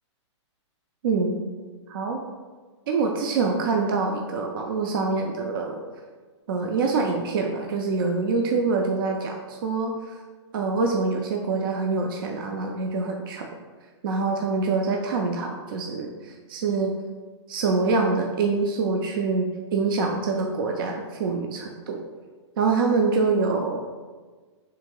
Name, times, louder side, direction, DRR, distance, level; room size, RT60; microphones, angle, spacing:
voice 1, 1.0-1.4 1.9-2.2 2.9-5.8 6.5-10.2 10.5-13.5 14.0-16.9 17.5-22.0 22.6-23.8, right 4 dB, 45° right, 2 dB, 0.4 m, -25 dB
3.5 x 2.9 x 4.6 m, 1.4 s
hypercardioid pair, 170°, 15 cm